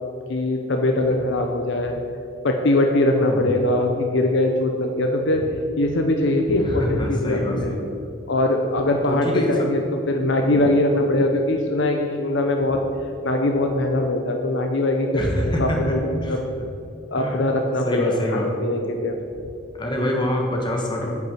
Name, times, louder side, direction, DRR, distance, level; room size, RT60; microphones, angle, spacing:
voice 1, 0.3-2.0 2.4-7.8 8.3-9.8 10.1-12.8 13.2-16.4 17.1-19.2, left 1 dB, 60° left, 3 dB, 0.8 m, -22 dB
voice 2, 3.2-3.6 6.6-7.9 9.0-9.7 15.1-16.4 17.2-17.4 17.8-18.5 19.8-21.2, left 1 dB, 25° left, 0 dB, 1.6 m, -25 dB
9.1 x 6.1 x 7.6 m, 2.6 s
head